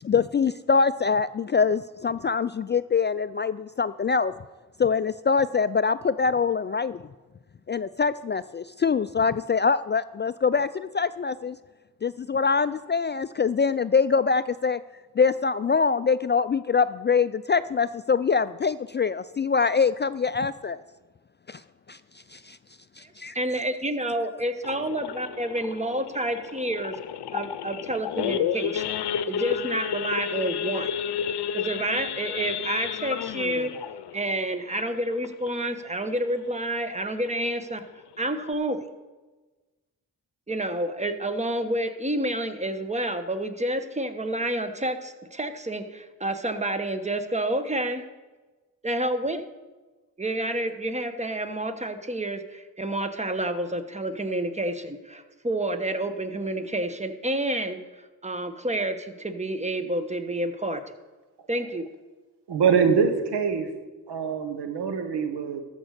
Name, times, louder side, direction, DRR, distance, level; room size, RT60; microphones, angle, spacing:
voice 1, 0.0-4.3 4.8-7.0 7.7-11.6 12.0-14.8 15.2-20.8 21.5-21.6 21.9-22.0 22.3-22.6 23.0-23.3, left 5 dB, 30° left, 14 dB, 0.3 m, -24 dB
voice 2, 23.0-26.9 27.3-28.9 29.3-30.9 31.5-33.7 34.1-37.8 38.2-38.9 40.5-48.1 48.8-49.4 50.2-57.8 58.2-61.0 61.5-61.8, right 1 dB, 15° right, 9 dB, 1.2 m, -29 dB
Idling / Accelerating revving vroom / Sawing, 24.6-35.7 36.1-36.3 36.6-36.7 37.1-37.4 37.9-38.0 38.2-38.5, left 9 dB, 75° left, 0.7 m, -31 dB
voice 3, 62.5-63.7 64.1-65.6, right 6 dB, 80° right, 7 dB, 1.3 m, -24 dB
13.5 x 5.4 x 6.6 m, 1.3 s
supercardioid pair, 40°, 40 cm